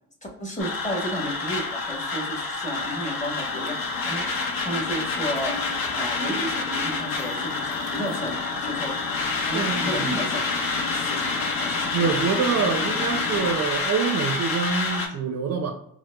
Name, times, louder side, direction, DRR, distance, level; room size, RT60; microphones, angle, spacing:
voice 1, 0.4-4.3 4.6-5.6 5.9-8.9 9.4-11.9, equal, 20° left, -1 dB, 1.2 m, -32 dB
sound 1, 0.6-15.1, left 3 dB, 60° left, 0.9 m, -28 dB
sound 2, 3.4-13.6, left 7 dB, 85° left, 0.5 m, -36 dB
voice 2, 9.5-10.1 11.9-15.7, right 5 dB, 45° right, 5 dB, 0.5 m, -26 dB
4.6 x 2.0 x 2.2 m, 0.73 s
cardioid pair, 100°, 39 cm